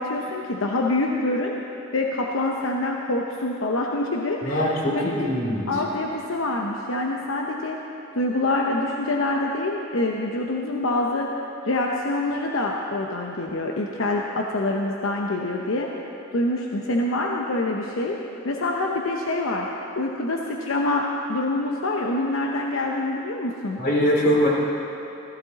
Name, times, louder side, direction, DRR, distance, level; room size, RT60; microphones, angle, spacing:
voice 1, 0.0-1.5 1.9-5.3 5.7-7.8 8.1-11.3 11.7-15.9 16.3-18.2 18.4-19.7 20.0-23.8, left 2 dB, 80° left, 0 dB, 0.9 m, -26 dB
voice 2, 4.4-5.7 23.8-24.5, equal, 45° left, -3 dB, 2.9 m, -22 dB
15.5 x 15.0 x 4.2 m, 2.9 s
head